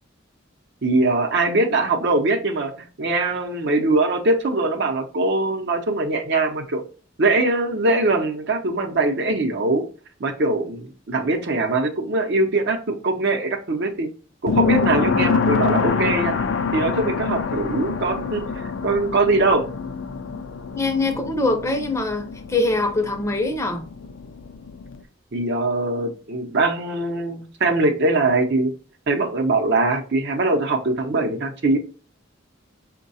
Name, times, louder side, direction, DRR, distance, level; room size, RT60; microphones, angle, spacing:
voice 1, 0.8-6.8 7.2-9.9 10.2-14.1 14.4-16.3 16.7-19.6 25.3-28.7 29.1-31.8, right 2 dB, 60° right, 0.7 m, -22 dB
sound 1, 14.5-25.0, left 5 dB, 65° left, 0.5 m, -26 dB
voice 2, 20.7-23.8, left 2 dB, 15° left, 0.6 m, -23 dB
5.4 x 2.2 x 4.0 m
head